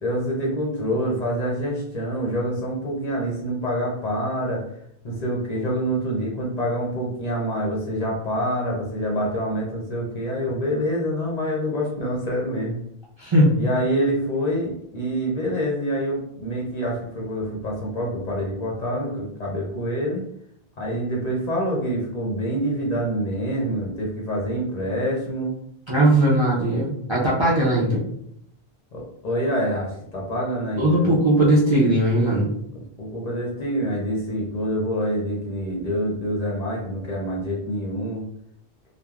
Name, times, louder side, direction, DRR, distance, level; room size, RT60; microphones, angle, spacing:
voice 1, 0.0-4.6 5.0-12.8 13.6-20.2 20.8-25.5 27.8-28.0 28.9-31.2 32.7-38.2, equal, 50° left, -3 dB, 0.6 m, -26 dB
voice 2, 13.2-13.5 25.9-28.0 30.8-32.5, right 1 dB, 35° right, -7 dB, 0.5 m, -19 dB
3.1 x 2.0 x 2.3 m, 0.72 s
omnidirectional pair, 1.0 m